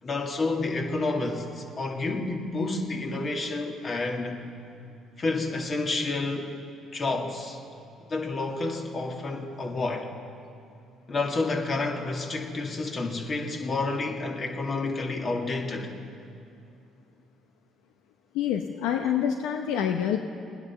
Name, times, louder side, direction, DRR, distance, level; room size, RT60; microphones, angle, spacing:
voice 1, 0.0-4.4 5.2-6.5 6.9-7.6 8.1-10.1 11.1-15.9, left 3 dB, 40° left, 2 dB, 2.2 m, -29 dB
voice 2, 18.3-20.2, left 9 dB, 85° left, 4 dB, 0.7 m, -26 dB
19.5 x 9.9 x 7.2 m, 2.6 s
supercardioid pair, 70°, 0 cm